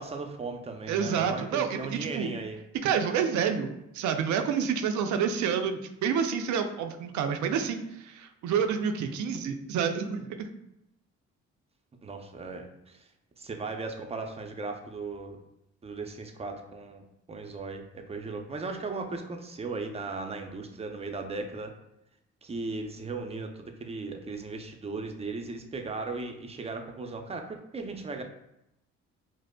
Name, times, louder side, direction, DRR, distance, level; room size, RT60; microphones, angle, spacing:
voice 1, 0.0-2.6 12.0-13.1 13.4-15.4 15.8-17.0 17.3-21.7 22.4-23.5 23.8-28.2, right 3 dB, 20° right, 4 dB, 0.5 m, -37 dB
voice 2, 0.9-2.3 2.8-3.7 3.9-10.5, right 7 dB, 75° right, 6 dB, 0.5 m, -28 dB
4.9 x 2.0 x 2.2 m, 0.85 s
cardioid pair, 90°, 30 cm